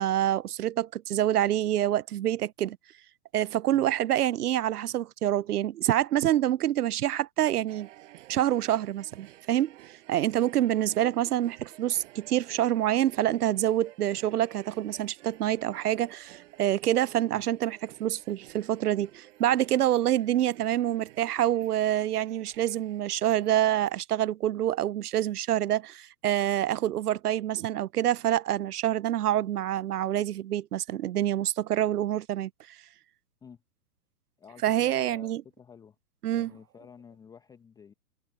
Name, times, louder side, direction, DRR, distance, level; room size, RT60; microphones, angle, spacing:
voice 1, 0.0-2.8 3.3-7.9 8.3-9.7 10.1-32.8 34.6-35.4 36.2-36.5, right 12 dB, 75° right, 0.6 m, -27 dB
sound 1, 7.7-23.9, right 16 dB, 50° right, 7.6 m, -53 dB
voice 2, 34.4-36.0 36.3-37.9, left 7 dB, 10° left, 0.7 m, -50 dB
hypercardioid pair, 120°, 47 cm